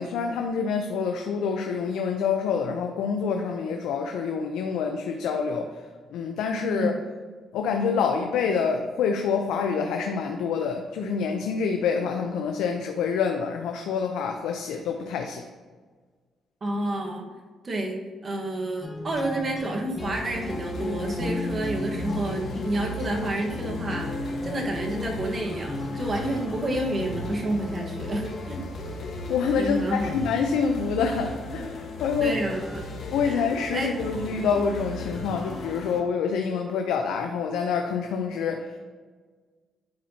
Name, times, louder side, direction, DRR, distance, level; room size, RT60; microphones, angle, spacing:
voice 1, 0.0-5.7 6.1-6.9 7.5-15.4 29.0-32.4 33.1-38.8, left 6 dB, 90° left, 4 dB, 0.5 m, -27 dB
voice 2, 6.6-7.0 16.6-17.3 17.6-28.6 29.6-30.1 32.2-32.8 33.2-33.4 33.7-33.9, right 1 dB, 40° right, 1 dB, 1.3 m, -29 dB
sound 1, 18.8-27.7, left 1 dB, 20° left, 1.2 m, -35 dB
sound 2, 20.0-36.0, left 2 dB, 60° left, 1.2 m, -36 dB
10.5 x 4.3 x 2.8 m, 1.5 s
cardioid pair, 90°, 0 cm